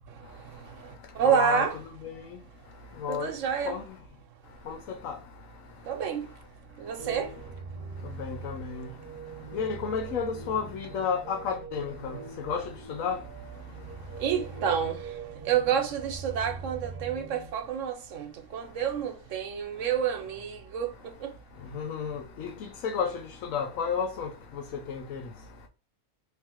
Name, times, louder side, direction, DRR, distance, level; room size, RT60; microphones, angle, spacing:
voice 1, 0.1-1.8 3.1-3.8 5.8-8.3 8.9-9.6 13.6-21.4, right 8 dB, 75° right, 1.1 m, -30 dB
voice 2, 1.2-1.7 2.0-2.1 3.0-3.3 3.7-3.8 4.7-4.8 5.0-5.2 8.2-8.9 9.5-12.1 12.5-12.6 13.0-13.2 21.7-22.5 22.8-23.1 23.5-24.3 24.9-25.2, left 6 dB, 85° left, 1.1 m, -31 dB
sound 1, 7.0-17.5, right 4 dB, 50° right, 1.1 m, -42 dB
3.4 x 3.2 x 4.4 m
omnidirectional pair, 1.3 m